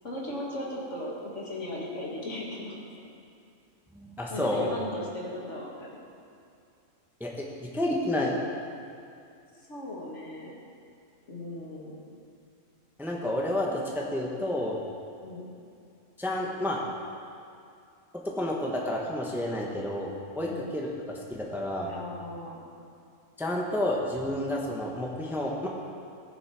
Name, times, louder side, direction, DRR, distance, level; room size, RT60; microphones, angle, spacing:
voice 1, 0.0-2.8 4.3-5.9 9.5-10.5 11.3-11.9 15.2-15.5 20.4-20.6 21.9-22.6, left 1 dB, 60° left, -3 dB, 2.2 m, -37 dB
voice 2, 3.9-4.7 7.2-8.4 13.0-14.8 16.2-16.8 18.4-20.9 21.3-21.9 23.4-25.7, left 1 dB, ahead, -2 dB, 1.1 m, -30 dB
19.0 x 6.5 x 4.9 m, 2.5 s
omnidirectional pair, 1.4 m